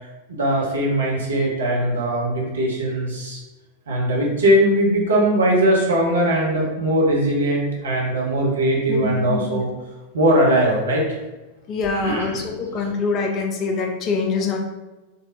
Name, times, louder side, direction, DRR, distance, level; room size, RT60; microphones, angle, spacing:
voice 1, 0.3-3.4 3.9-9.7 10.1-11.0 11.8-12.4, right 1 dB, 70° right, -3 dB, 1.1 m, -20 dB
voice 2, 8.9-9.6 11.7-14.6, left 4 dB, 35° left, 2 dB, 0.6 m, -24 dB
4.1 x 3.5 x 2.7 m, 1.1 s
figure-of-eight pair, 90°, 0 cm